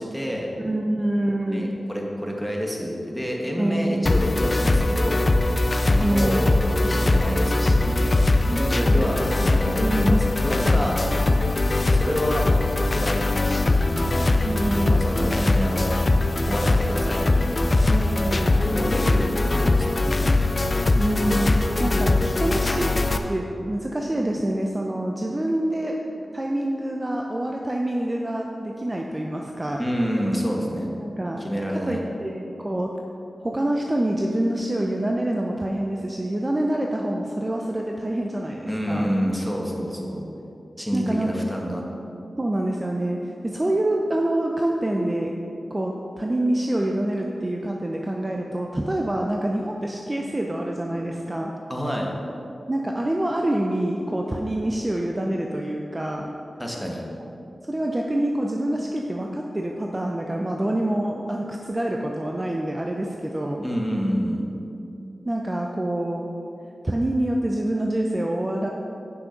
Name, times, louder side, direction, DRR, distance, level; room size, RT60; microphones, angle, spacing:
voice 1, 0.0-0.5 1.5-5.2 5.8-11.0 11.9-12.5 12.8-14.1 14.9-15.9 16.5-17.2 17.5-17.6 18.5-20.2 29.8-30.9 31.4-32.0 38.7-40.2 40.8-41.8 51.7-52.1 56.6-57.0 63.6-64.4, equal, ahead, -1 dB, 1.7 m, -28 dB
voice 2, 0.6-1.7 3.6-4.2 6.0-6.5 8.5-9.2 9.8-10.6 14.4-15.1 17.9-18.6 21.0-22.9 23.3-26.0 26.3-29.8 31.0-31.4 31.7-32.9 33.4-39.1 40.9-41.3 42.4-45.3 45.7-51.5 52.7-56.3 57.7-63.6 65.2-66.3 66.8-68.7, right 1 dB, 25° right, 0 dB, 0.7 m, -26 dB
sound 1, 4.1-23.2, left 2 dB, 45° left, 0.6 m, -21 dB
8.6 x 6.1 x 5.2 m, 2.7 s
cardioid pair, 50°, 0 cm